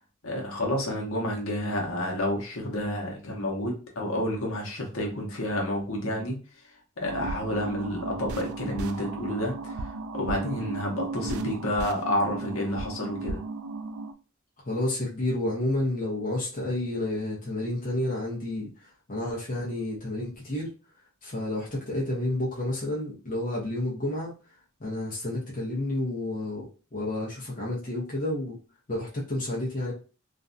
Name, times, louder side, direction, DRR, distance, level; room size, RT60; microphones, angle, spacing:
voice 1, 0.2-13.4, left 1 dB, 80° left, 0 dB, 0.8 m, -30 dB
sound 1, 7.0-14.1, right 3 dB, 85° right, 0.3 m, -35 dB
voice 2, 14.6-20.7 21.2-24.3 24.8-26.7 26.9-28.6 28.9-29.9, left 1 dB, 40° left, -5 dB, 0.7 m, -30 dB
2.5 x 2.1 x 2.5 m, 0.34 s
head